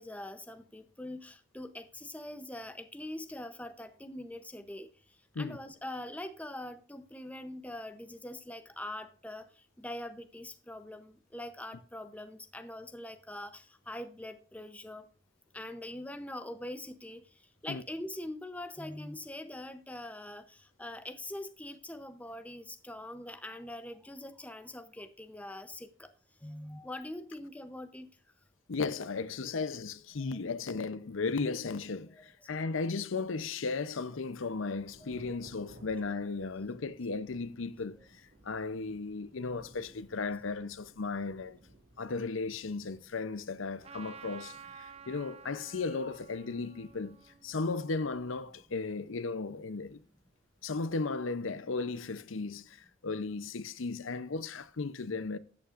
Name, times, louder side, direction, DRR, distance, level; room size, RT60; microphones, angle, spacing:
voice 1, 0.0-4.9 5.4-9.4 9.8-15.1 15.5-17.2 17.6-26.1 26.4-28.1 32.7-32.8 35.0-35.4 38.0-38.1, left 1 dB, 5° left, 0.7 m, -43 dB
voice 2, 28.7-38.0 38.4-41.6 42.0-47.2 47.4-50.0 50.6-52.8 53.0-55.4, left 4 dB, 80° left, 0.7 m, -35 dB
Thunder / Rain, 34.7-51.0, right 1 dB, 90° right, 2.6 m, -62 dB
Trumpet, 43.8-48.5, right 6 dB, 30° right, 0.6 m, -52 dB
12.5 x 8.5 x 2.5 m
head